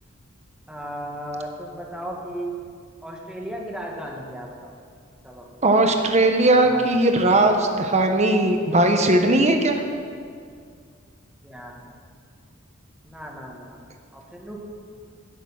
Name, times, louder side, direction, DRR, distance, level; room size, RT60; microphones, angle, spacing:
voice 1, 0.7-2.7 3.0-4.7 5.2-5.5 6.5-6.8 7.1-7.2 11.4-12.0 13.0-14.6, right 1 dB, 5° right, -1 dB, 1.7 m, -36 dB
voice 2, 5.6-9.8, right 2 dB, 35° right, 5 dB, 1.1 m, -18 dB
16.5 x 7.1 x 5.8 m, 2.2 s
head